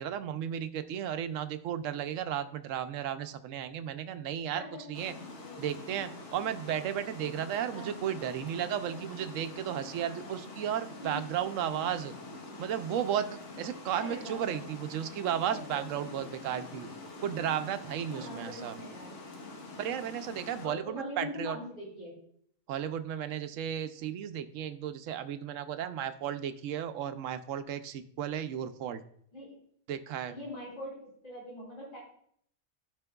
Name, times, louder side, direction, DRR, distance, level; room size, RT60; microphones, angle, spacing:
voice 1, 0.0-4.6 4.9-5.1 5.6-12.1 12.6-16.9 17.2-18.8 19.8-21.6 22.7-29.0 29.9-30.3, right 9 dB, 70° right, 10 dB, 0.9 m, -34 dB
Water, 4.9-20.7, left 2 dB, 60° left, 1.4 m, -45 dB
voice 2, 13.9-14.6 15.5-16.0 18.1-19.2 20.6-22.1 29.3-29.5 30.3-32.0, left 1 dB, 35° left, -7 dB, 3.7 m, -42 dB
14.0 x 5.2 x 2.3 m, 0.66 s
omnidirectional pair, 1.4 m